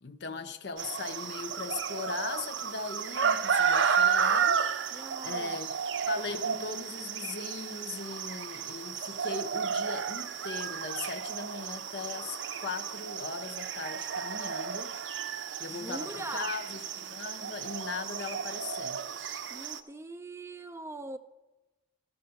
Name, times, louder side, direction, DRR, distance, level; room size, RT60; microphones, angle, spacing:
voice 1, 0.0-4.6 5.2-5.8 6.1-15.0 15.6-19.0, left 4 dB, 60° left, 0.6 m, -39 dB
sound 1, 0.8-19.8, right 7 dB, 75° right, 0.5 m, -32 dB
voice 2, 4.9-5.6 15.7-16.5 19.5-21.2, right 2 dB, 15° right, 0.3 m, -42 dB
13.5 x 5.3 x 5.7 m
head